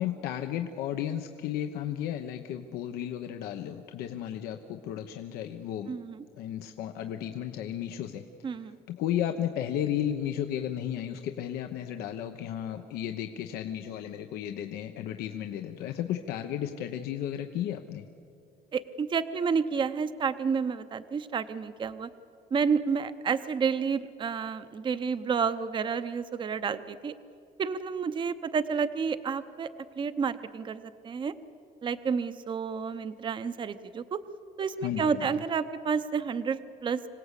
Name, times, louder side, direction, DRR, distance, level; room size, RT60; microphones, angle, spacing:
voice 1, 0.0-6.0 6.3-8.2 8.9-18.0 34.8-35.4, left 10 dB, 80° left, 5 dB, 1.1 m, -34 dB
voice 2, 5.9-6.2 8.4-8.8 18.7-22.1 22.5-27.1 27.6-29.7 30.0-31.3 31.8-34.2 34.6-37.1, right 6 dB, 30° right, 11 dB, 0.8 m, -30 dB
26.0 x 17.5 x 8.3 m, 2.5 s
cardioid pair, 120°, 16 cm